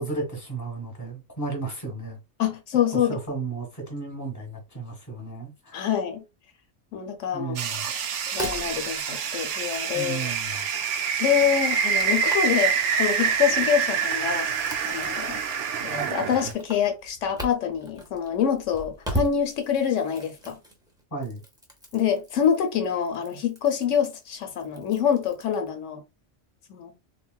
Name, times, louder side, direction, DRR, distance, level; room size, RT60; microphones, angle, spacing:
voice 1, 0.0-2.2 2.9-5.9 7.3-7.9 9.9-10.6 21.1-21.4, right 3 dB, 15° left, 1.1 m, -34 dB
voice 2, 2.4-3.2 5.7-6.2 6.9-7.6 8.3-10.3 10.9-15.4 15.8-20.6 21.9-26.0 26.7-26.9, left 8 dB, 85° left, 1.0 m, -26 dB
sound 1, 7.6-16.5, right 7 dB, 80° right, 0.9 m, -26 dB
sound 2, 8.2-10.6 11.2-25.7, right 1 dB, 5° right, 0.7 m, -39 dB
3.5 x 2.3 x 2.2 m
omnidirectional pair, 1.2 m